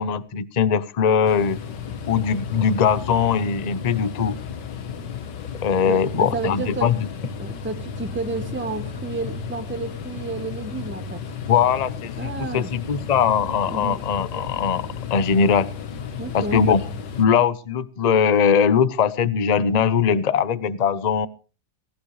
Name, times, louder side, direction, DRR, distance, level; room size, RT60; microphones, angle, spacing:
voice 1, 0.0-1.6 2.1-4.4 5.6-7.0 11.5-15.7 16.3-16.8 17.2-21.3, left 7 dB, 40° left, 16 dB, 0.6 m, -21 dB
sound 1, 1.3-17.3, left 6 dB, 75° left, 1.9 m, -33 dB
voice 2, 5.9-6.9 7.4-11.2 12.2-12.7 13.7-14.0 16.2-16.6, right 3 dB, 10° right, 8 dB, 1.0 m, -31 dB
18.0 x 17.5 x 3.2 m, 0.35 s
omnidirectional pair, 1.9 m